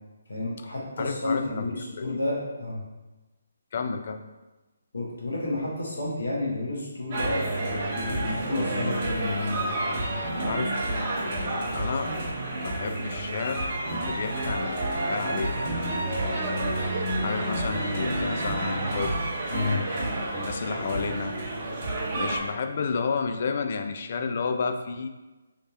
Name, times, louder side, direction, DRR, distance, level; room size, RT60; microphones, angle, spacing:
voice 1, 0.3-2.8 4.9-9.7 19.5-19.8, left 2 dB, 80° left, -4 dB, 1.3 m, -31 dB
voice 2, 1.0-2.2 3.7-4.2 10.5-10.7 11.2-12.1 12.6-15.6 17.2-19.2 20.3-21.4 22.1-25.1, left 5 dB, 50° left, 7 dB, 0.3 m, -31 dB
sound 1, 7.1-22.4, right 1 dB, 35° right, 0.9 m, -29 dB
3.3 x 3.2 x 2.8 m, 1.1 s
figure-of-eight pair, 155°, 0 cm